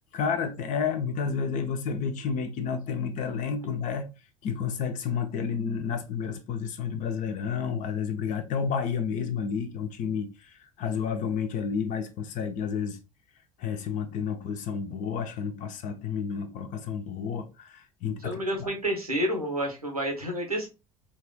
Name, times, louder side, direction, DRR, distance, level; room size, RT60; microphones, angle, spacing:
voice 1, 0.1-4.1 4.4-13.0 13.6-18.7, left 6 dB, 45° left, 0.6 m, -31 dB
voice 2, 18.2-20.7, right 1 dB, 90° right, 0.8 m, -29 dB
4.1 x 2.4 x 2.2 m
figure-of-eight pair, 60°, 18 cm